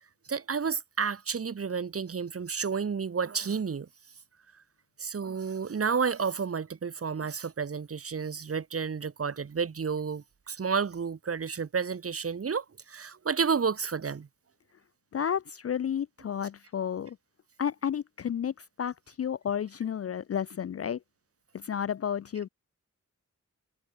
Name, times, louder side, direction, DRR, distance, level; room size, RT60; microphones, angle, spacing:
voice 1, 0.3-3.9 5.0-14.3, right 6 dB, 50° right, 1.3 m, -31 dB
voice 2, 15.1-17.2 17.6-21.0 21.5-22.5, left 8 dB, 50° left, 0.4 m, -32 dB
wide cardioid pair, 145°, 31 cm